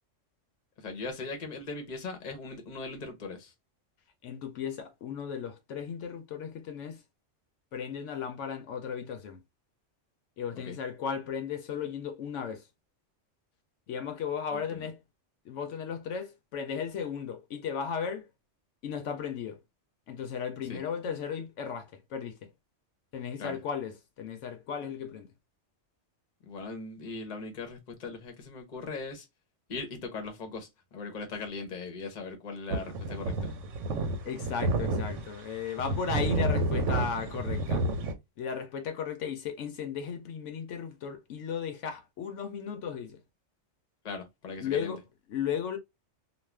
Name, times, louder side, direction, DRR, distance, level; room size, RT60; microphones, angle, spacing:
voice 1, 0.8-3.5 10.5-10.8 14.5-14.9 20.7-20.8 23.4-23.6 26.4-29.3 29.7-33.6 44.0-44.9, left 4 dB, 40° left, 0.8 m, -39 dB
voice 2, 4.2-7.0 7.7-9.4 10.4-12.6 13.9-15.0 15.5-18.2 18.8-19.6 20.1-22.3 23.1-25.3 34.3-37.8 38.4-43.2 44.6-45.0 45.3-45.8, left 7 dB, 75° left, 0.9 m, -35 dB
sound 1, 32.7-35.3 35.8-38.1, right 2 dB, 85° right, 1.0 m, -30 dB
2.4 x 2.3 x 3.1 m
omnidirectional pair, 1.3 m